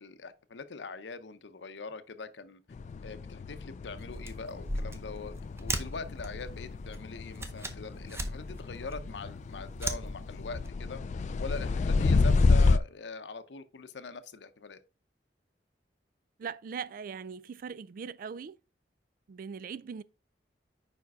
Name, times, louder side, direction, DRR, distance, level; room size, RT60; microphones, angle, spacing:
voice 1, 0.0-2.6 3.0-14.8, left 4 dB, 85° left, 0.7 m, -43 dB
sound 1, 2.7-12.8, left 3 dB, 40° left, 0.3 m, -29 dB
sound 2, 4.0-10.7, right 1 dB, 15° right, 0.7 m, -39 dB
voice 2, 16.4-18.6 19.3-20.0, right 6 dB, 50° right, 0.3 m, -40 dB
5.1 x 4.8 x 4.6 m
head